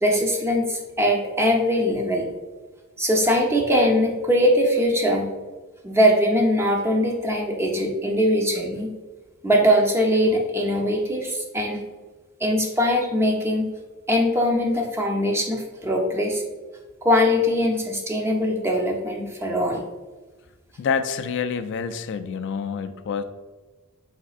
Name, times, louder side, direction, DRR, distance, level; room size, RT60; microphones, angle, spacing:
voice 1, 0.0-2.2 3.0-5.3 5.8-8.9 9.4-11.8 12.4-13.6 14.1-16.4 17.0-19.8, equal, 10° right, 1 dB, 0.6 m, -21 dB
voice 2, 20.8-23.2, left 6 dB, 55° left, 10 dB, 0.3 m, -27 dB
5.0 x 3.5 x 2.4 m, 1.3 s
head